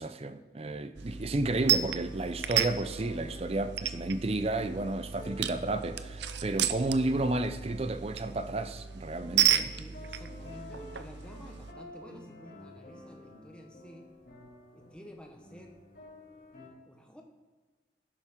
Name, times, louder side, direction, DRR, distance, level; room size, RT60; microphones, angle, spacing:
voice 1, 0.0-9.7, right 2 dB, 35° right, 0.5 m, -32 dB
sound 1, 1.0-11.7, right 10 dB, 80° right, 0.6 m, -33 dB
sound 2, 1.3-16.7, left 1 dB, 60° left, 4.0 m, -51 dB
voice 2, 6.4-6.7 9.6-14.1 14.7-15.8 16.8-17.2, equal, 5° left, 1.2 m, -52 dB
12.5 x 11.0 x 3.7 m
head